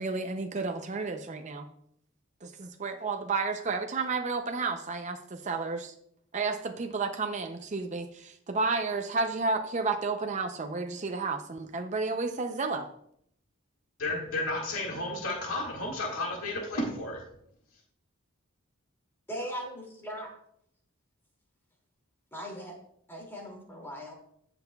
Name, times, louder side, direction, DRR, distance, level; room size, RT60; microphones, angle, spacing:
voice 1, 0.0-1.7 2.4-5.9 6.3-12.9, right 4 dB, 35° right, 5 dB, 0.5 m, -31 dB
voice 2, 14.0-17.2, left 2 dB, 85° left, -1 dB, 1.9 m, -32 dB
voice 3, 19.3-20.3 22.3-22.7 23.1-24.1, equal, 10° left, -1 dB, 2.4 m, -39 dB
16.0 x 5.8 x 2.3 m, 0.71 s
head